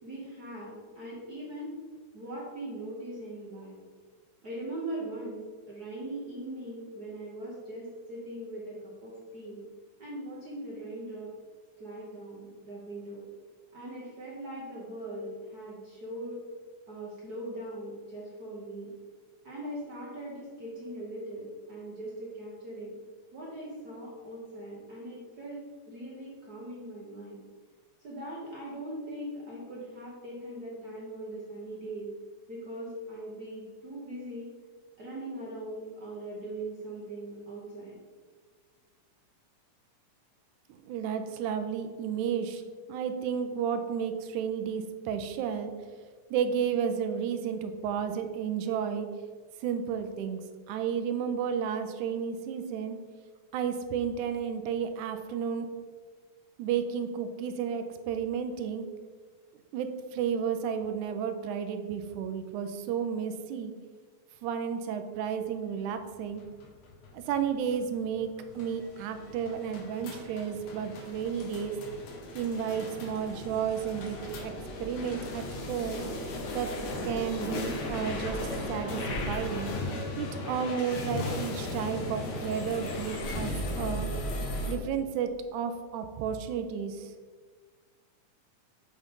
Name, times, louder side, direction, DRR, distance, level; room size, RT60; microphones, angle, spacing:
voice 1, 0.0-1.7 2.1-3.8 4.4-5.4 5.7-9.6 10.0-11.3 11.8-13.2 13.7-16.4 16.9-18.9 19.4-22.9 23.3-25.6 25.9-27.4 28.0-32.1 32.5-34.5 35.0-38.0, right 1 dB, 70° right, -5 dB, 0.9 m, -40 dB
voice 2, 40.7-42.6 42.9-45.7 46.3-49.1 49.6-50.4 50.7-53.0 53.5-55.7 56.6-58.9 59.7-63.7 64.4-66.4 67.1-68.3 68.6-71.7 72.4-74.5 74.8-76.0 76.5-76.8 77.0-79.7 80.2-84.1 84.7-87.1, right 7 dB, 85° right, 7 dB, 2.0 m, -32 dB
sound 1, 66.1-84.7, left 1 dB, 80° left, 2.5 m, -36 dB
7.5 x 3.8 x 5.1 m, 1.5 s
omnidirectional pair, 3.4 m